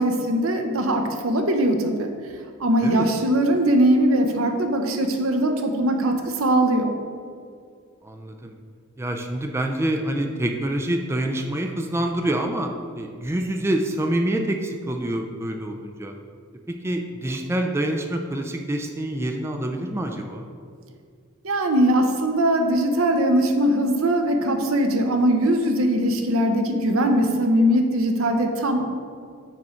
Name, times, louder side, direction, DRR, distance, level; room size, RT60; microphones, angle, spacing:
voice 1, 0.0-2.1 2.6-6.9 21.4-28.9, right 1 dB, 80° right, 5 dB, 0.7 m, -21 dB
voice 2, 8.0-8.6 9.0-16.1 16.7-20.5, right 1 dB, 10° right, 3 dB, 0.3 m, -26 dB
6.1 x 4.9 x 4.3 m, 2.2 s
head